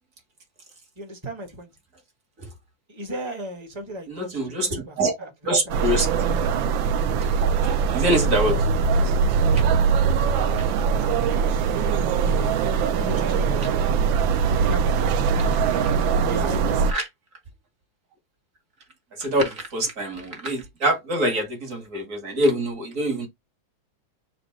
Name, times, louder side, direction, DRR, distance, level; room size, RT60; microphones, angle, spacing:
voice 1, 1.0-1.7 2.9-5.3 5.6-5.8 10.3-11.6 11.9-12.6 13.0-13.9 14.5-15.3 16.2-16.9, right 1 dB, 15° right, 1.0 m, -36 dB
voice 2, 4.1-5.1 5.4-6.5 7.2-8.7 9.5-9.6 15.7-15.9 16.9-17.1 19.1-23.3, right 1 dB, 45° right, 1.5 m, -25 dB
sound 1, 5.7-16.9, right 6 dB, 75° right, 1.3 m, -22 dB
4.3 x 2.5 x 4.6 m
omnidirectional pair, 2.3 m